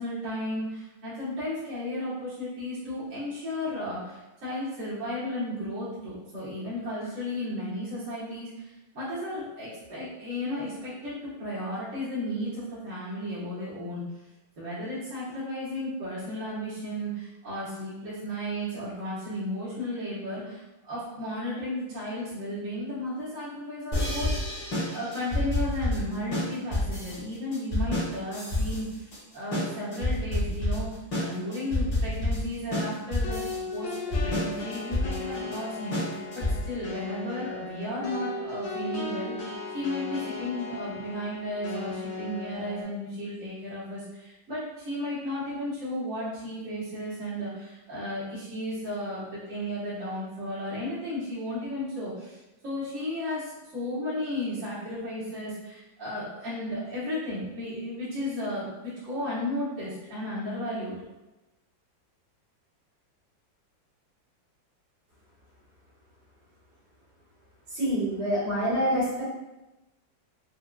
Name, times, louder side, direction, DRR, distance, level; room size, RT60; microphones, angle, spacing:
voice 1, 0.0-14.0 14.6-20.6 20.9-24.3 24.9-30.9 31.2-34.0 34.2-61.0, left 1 dB, 45° right, -11 dB, 1.7 m, -34 dB
sound 1, 23.9-36.8, left 1 dB, 45° left, 1.6 m, -29 dB
sound 2, 33.2-42.8, left 3 dB, 80° left, 1.4 m, -36 dB
voice 2, 67.7-69.2, equal, 70° right, -9 dB, 2.4 m, -26 dB
4.9 x 2.7 x 2.4 m, 1.0 s
omnidirectional pair, 2.0 m